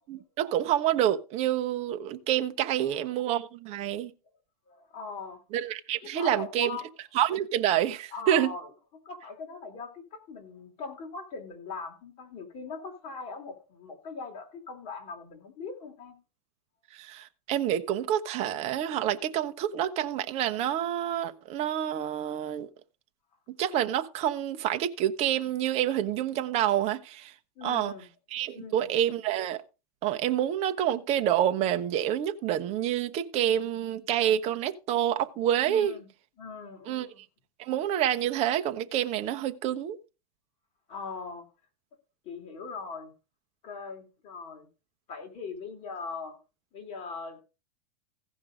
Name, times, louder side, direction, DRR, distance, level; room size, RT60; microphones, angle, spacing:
voice 1, 0.1-4.1 5.5-6.7 7.1-8.5 16.9-22.7 23.6-27.3 27.6-27.9 28.3-29.6 30.0-35.9 36.9-37.1 37.6-40.0, right 11 dB, 30° right, 1.0 m, -28 dB
voice 2, 4.7-5.4 6.0-6.9 8.1-8.7 9.0-16.1 27.6-28.1 28.5-28.9 35.7-36.1 36.4-37.2 40.9-41.5 42.2-43.1 43.6-44.7 45.1-46.4 46.7-47.4, left 4 dB, 30° left, 3.2 m, -40 dB
15.5 x 5.4 x 5.2 m
supercardioid pair, 150°, 20 cm